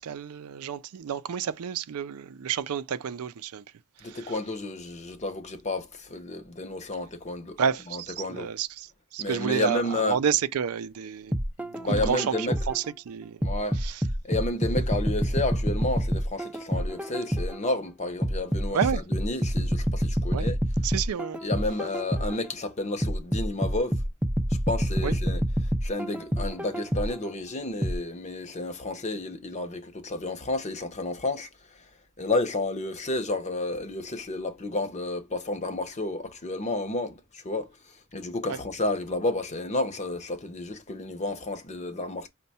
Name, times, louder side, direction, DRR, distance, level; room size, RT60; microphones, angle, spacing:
voice 1, 0.0-3.6 4.0-4.3 7.6-13.4 13.8-14.0 18.7-19.0 20.3-20.5 20.8-21.4 25.0-25.2 38.5-38.6, right 7 dB, 85° right, 0.4 m, -30 dB
voice 2, 4.0-7.6 7.9-8.5 9.2-10.2 11.8-12.5 13.4-13.8 14.2-20.6 21.4-24.0 24.7-31.5 32.2-37.7 38.1-42.3, left 2 dB, 30° left, 0.7 m, -31 dB
sound 1, 11.3-12.9 13.4-17.7 18.2-22.5 23.0-27.3 27.8-28.0, equal, 5° right, 0.4 m, -27 dB
5.4 x 2.2 x 4.0 m
head